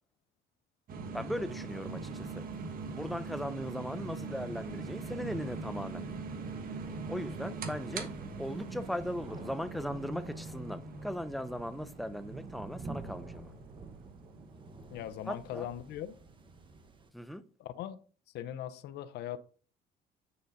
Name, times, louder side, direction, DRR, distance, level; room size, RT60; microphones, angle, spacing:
sound 1, 0.9-16.9, right 4 dB, 60° right, 1.3 m, -42 dB
voice 1, 1.1-2.4 2.9-6.1 7.1-8.1 8.4-13.5 15.3-15.7 17.1-17.4, equal, ahead, 0.6 m, -38 dB
sound 2, 1.7-17.1, right 3 dB, 30° right, 1.1 m, -51 dB
sound 3, 4.1-14.1, right 6 dB, 80° right, 3.2 m, -61 dB
voice 2, 14.9-16.1 17.6-18.0 18.3-19.4, left 11 dB, 80° left, 0.7 m, -40 dB
9.5 x 4.0 x 4.0 m
cardioid pair, 110°, 17 cm